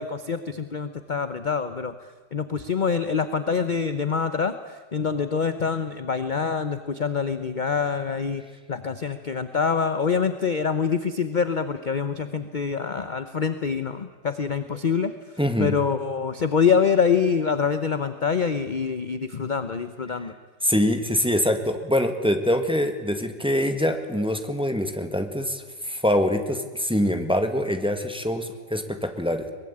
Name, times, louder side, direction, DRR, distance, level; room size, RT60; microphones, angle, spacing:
voice 1, 0.0-1.9 2.3-8.4 8.7-15.1 15.6-20.3, left 6 dB, 35° left, 10 dB, 0.8 m, -25 dB
voice 2, 15.4-15.7 20.6-29.5, equal, 5° right, 6 dB, 1.7 m, -24 dB
23.0 x 21.0 x 8.7 m, 1.3 s
omnidirectional pair, 1.8 m